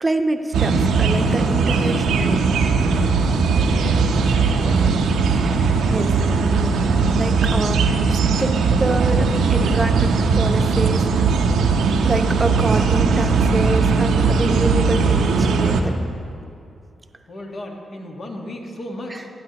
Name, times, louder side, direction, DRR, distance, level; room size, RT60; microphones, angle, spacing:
voice 1, 0.0-2.4 5.4-6.8 7.1-11.3 12.0-16.0 19.1-19.2, right 2 dB, 25° right, 6 dB, 0.8 m, -26 dB
sound 1, 0.5-15.8, right 4 dB, 85° right, 0.6 m, -18 dB
voice 2, 3.5-4.8 17.3-19.3, left 1 dB, 55° left, 1 dB, 1.4 m, -35 dB
15.5 x 8.9 x 2.9 m, 2.6 s
supercardioid pair, 50°, 0 cm